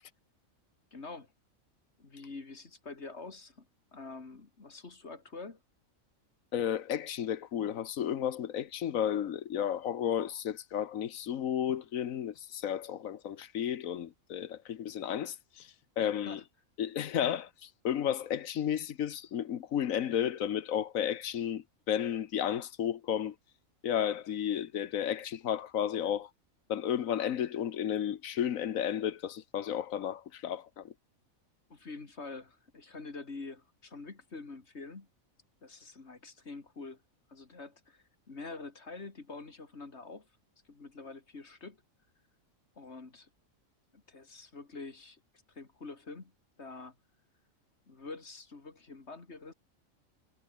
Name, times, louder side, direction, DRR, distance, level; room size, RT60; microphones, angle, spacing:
voice 1, 0.9-1.3 2.0-3.7 3.9-5.6 16.0-16.4 31.7-35.1 35.6-37.0 37.3-40.3 40.7-41.8 42.8-43.3 43.9-45.2 45.5-46.3 46.6-46.9 47.9-49.5, left 3 dB, 55° left, 2.7 m, -46 dB
voice 2, 6.5-16.4 16.8-23.3 23.8-26.3 26.7-30.9, left 9 dB, 75° left, 1.3 m, -33 dB
omnidirectional pair, 1.4 m